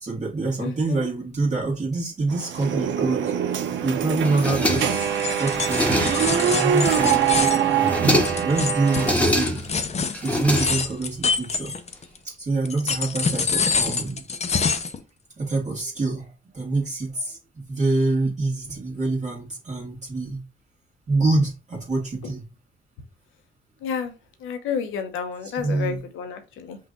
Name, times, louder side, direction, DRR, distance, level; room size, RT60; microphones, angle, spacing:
voice 1, 0.0-3.3 3.8-7.9 8.4-9.6 10.1-11.7 12.2-14.2 15.4-17.4 17.7-20.4 21.1-22.4 25.4-26.0, right 3 dB, 35° right, 1.6 m, -26 dB
voice 2, 0.6-1.1 23.8-24.1 24.4-26.8, left 7 dB, 85° left, 0.9 m, -30 dB
sound 1, 2.3-9.1, right 8 dB, 70° right, 0.8 m, -23 dB
sound 2, 4.2-5.1 5.5-6.4 6.8-7.4 7.7-8.5 8.9-9.8 10.1-11.1, left 1 dB, 5° left, 1.1 m, -25 dB
sound 3, 4.7-12.2 12.7-15.0, left 5 dB, 35° left, 0.6 m, -26 dB
5.6 x 2.5 x 3.7 m
cardioid pair, 90°, 20 cm